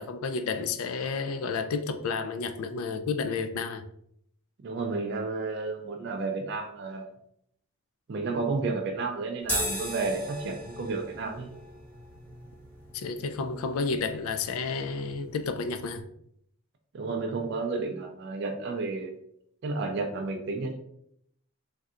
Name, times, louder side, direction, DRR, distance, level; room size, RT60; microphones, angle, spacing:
voice 1, 0.0-3.8 12.9-16.0, left 4 dB, 75° left, 9 dB, 0.3 m, -31 dB
voice 2, 4.6-7.1 8.1-11.5 16.9-19.1 19.6-20.8, right 3 dB, 50° right, 3 dB, 0.3 m, -31 dB
sound 1, 9.4-16.0, equal, 10° left, 1.2 m, -38 dB
3.3 x 2.7 x 2.4 m, 0.72 s
head